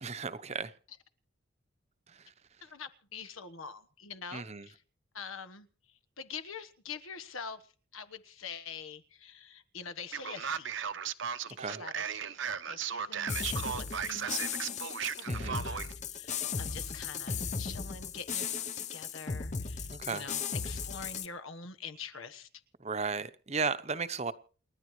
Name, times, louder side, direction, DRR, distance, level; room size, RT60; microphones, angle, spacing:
voice 1, 0.0-0.7 4.3-4.7 11.6-11.8 15.2-15.6 19.9-20.2 22.8-24.3, right 4 dB, 35° right, 0.8 m, -35 dB
voice 2, 2.6-4.8 5.1-5.7 6.2-7.6 7.9-11.0 11.5-22.5, left 5 dB, 90° left, 1.3 m, -45 dB
Male speech man speaking, 10.1-15.9, right 7 dB, 65° right, 0.8 m, -36 dB
sound 1, 13.3-21.3, left 5 dB, 35° left, 0.7 m, -36 dB
29.0 x 11.0 x 3.2 m
head